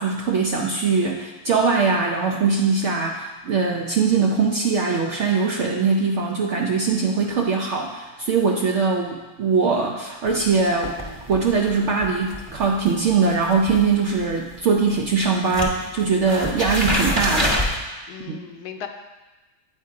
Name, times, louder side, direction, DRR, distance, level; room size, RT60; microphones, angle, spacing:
voice 1, 0.0-11.0 11.3-17.6 18.3-18.4, right 4 dB, 90° right, 0 dB, 0.6 m, -21 dB
sound 1, 10.3-15.2 15.5-17.8, equal, 20° right, 0.8 m, -28 dB
voice 2, 18.1-18.9, left 8 dB, 75° left, 5 dB, 1.1 m, -37 dB
8.3 x 3.2 x 4.7 m, 1.2 s
omnidirectional pair, 1.9 m